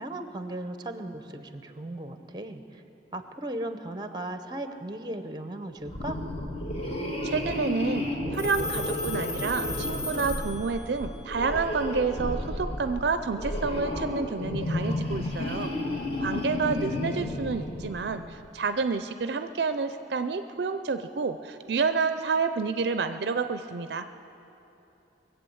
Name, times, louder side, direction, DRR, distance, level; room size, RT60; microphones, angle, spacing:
voice 1, 0.0-2.8 3.1-6.2 16.2-16.7, right 1 dB, 25° right, 9 dB, 0.7 m, -37 dB
sound 1, 5.8-18.3, left 1 dB, 30° left, 1.5 m, -32 dB
voice 2, 7.2-15.7 16.2-24.1, right 4 dB, 60° right, 10 dB, 0.5 m, -29 dB
Telephone, 8.3-11.1, left 2 dB, 10° left, 2.0 m, -36 dB
22.0 x 7.9 x 7.8 m, 2.9 s
head